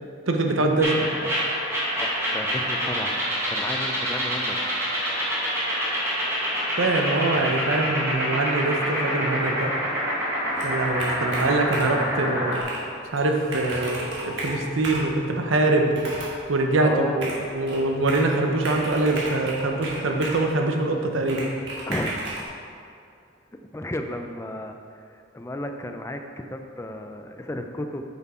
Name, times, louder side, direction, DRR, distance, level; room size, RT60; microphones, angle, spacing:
voice 1, 0.3-1.1 6.8-9.7 10.6-12.6 13.1-16.1 16.5-21.5, right 2 dB, 80° right, 3 dB, 0.8 m, -23 dB
sound 1, 0.8-12.6, equal, 15° right, 1.7 m, -27 dB
voice 2, 2.0-3.2 3.5-4.6 7.3-8.2 16.8-17.5 21.9-22.1 23.7-25.0 25.3-26.2 26.5-28.0, left 1 dB, 15° left, 5 dB, 0.4 m, -33 dB
Computer keyboard, 10.5-12.1 12.5-12.8 13.2-13.3 13.5-15.1 15.9-16.4 17.2-18.3 18.6-20.5 21.3-22.5, right 2 dB, 60° right, 1.7 m, -34 dB
Chink clink, 13.2-18.3, left 6 dB, 80° left, 1.0 m, -41 dB
7.2 x 6.0 x 4.3 m, 2.5 s
head